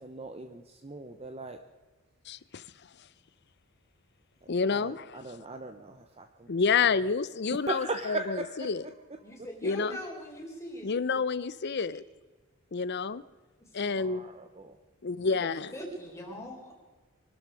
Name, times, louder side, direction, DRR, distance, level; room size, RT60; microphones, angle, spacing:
voice 1, 0.0-1.6 4.7-6.5 7.5-8.9 9.6-9.7 14.0-14.8, right 3 dB, 30° right, 7 dB, 0.8 m, -38 dB
voice 2, 2.3-2.6 4.5-5.2 6.5-8.2 8.7-8.8 9.6-10.0 10.8-12.0 12.7-13.2 13.7-14.3 15.0-15.7, left 5 dB, 50° left, 17 dB, 0.6 m, -29 dB
voice 3, 9.2-10.9 13.8-13.9 15.3-16.7, equal, 15° left, -1 dB, 4.2 m, -41 dB
24.0 x 12.5 x 4.8 m, 1.3 s
head